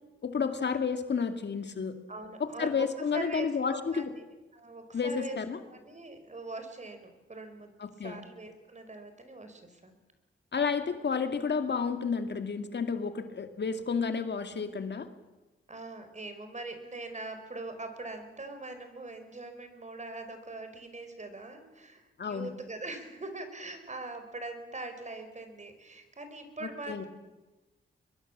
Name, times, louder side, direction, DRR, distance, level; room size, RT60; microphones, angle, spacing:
voice 1, 0.2-2.0 2.4-4.1 4.9-5.6 7.8-8.2 10.5-15.1 22.2-22.5 26.6-27.0, left 5 dB, 55° left, 7 dB, 2.2 m, -31 dB
voice 2, 2.1-2.9 3.1-4.0 4.5-5.4 5.7-7.7 8.0-10.0 15.7-27.1, right 2 dB, 35° right, 7 dB, 5.1 m, -42 dB
23.0 x 22.0 x 7.4 m, 1.1 s
cardioid pair, 65°, 21 cm